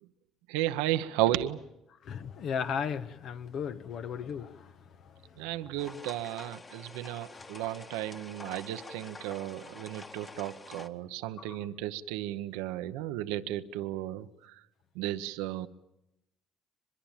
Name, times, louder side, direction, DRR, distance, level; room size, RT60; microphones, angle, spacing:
voice 1, 0.5-1.6 5.4-14.3 15.0-15.7, right 14 dB, 90° right, 0.9 m, -34 dB
voice 2, 2.0-4.7 5.6-5.7 7.3-7.5 11.4-11.6, left 7 dB, 60° left, 1.1 m, -36 dB
sound 1, 5.8-10.9, left 3 dB, 30° left, 1.9 m, -47 dB
24.0 x 22.0 x 9.0 m
supercardioid pair, 85°, 0 cm